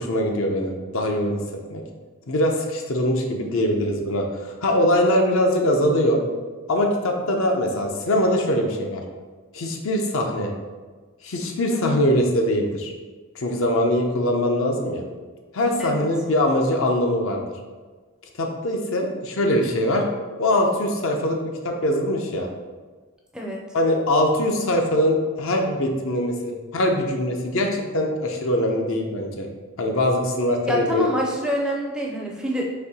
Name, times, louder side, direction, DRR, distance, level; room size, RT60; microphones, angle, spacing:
voice 1, 0.0-1.4 1.7-1.8 2.3-6.2 6.7-9.0 9.5-10.5 11.2-12.9 13.3-15.0 15.5-17.4 18.4-20.1 20.4-22.5 23.7-29.5 29.8-31.0, left 1 dB, 65° left, 2 dB, 0.6 m, -22 dB
voice 2, 11.7-12.0 15.8-16.1 23.3-23.6 30.7-32.8, left 1 dB, 5° right, -2 dB, 0.4 m, -26 dB
4.1 x 2.9 x 4.1 m, 1.4 s
head